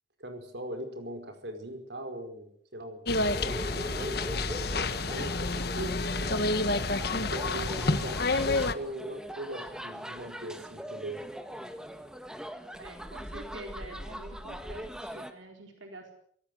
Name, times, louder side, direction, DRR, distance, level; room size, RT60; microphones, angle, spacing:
voice 1, 0.2-3.0 3.5-6.4 7.0-11.2, right 1 dB, 60° right, 6 dB, 5.0 m, -40 dB
sound 1, 3.1-8.7, left 2 dB, 55° left, 1.5 m, -29 dB
sound 2, 3.2-15.3, equal, 5° right, 1.6 m, -41 dB
voice 2, 12.8-16.1, right 1 dB, 80° right, 3 dB, 4.1 m, -47 dB
26.0 x 18.0 x 7.9 m, 0.64 s
head